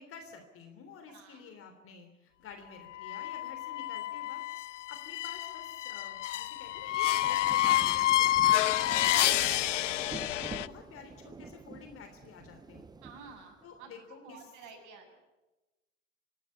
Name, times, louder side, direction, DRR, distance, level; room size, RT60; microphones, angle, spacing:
voice 1, 0.0-4.4 4.7-8.9 9.1-12.9 13.6-14.5, left 6 dB, 35° left, 6 dB, 3.3 m, -50 dB
voice 2, 1.1-1.5 8.4-8.9 13.0-13.9 14.2-15.1, right 5 dB, 50° right, 2 dB, 7.5 m, -51 dB
sound 1, 3.0-10.7, left 14 dB, 75° left, 0.6 m, -29 dB
Rain, 6.5-13.8, right 4 dB, 10° right, 0.8 m, -47 dB
26.5 x 12.5 x 9.9 m, 1.1 s
hypercardioid pair, 85°, 37 cm